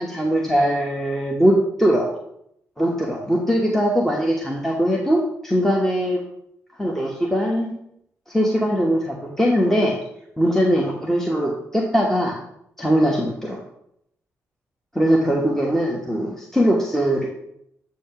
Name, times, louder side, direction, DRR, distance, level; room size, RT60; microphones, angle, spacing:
voice 1, 0.0-2.1 2.8-6.2 6.8-7.7 8.3-10.0 10.4-12.4 12.8-13.6 14.9-17.3, equal, 5° left, -1 dB, 1.1 m, -21 dB
8.3 x 2.8 x 5.9 m, 0.77 s
supercardioid pair, 50°, 6 cm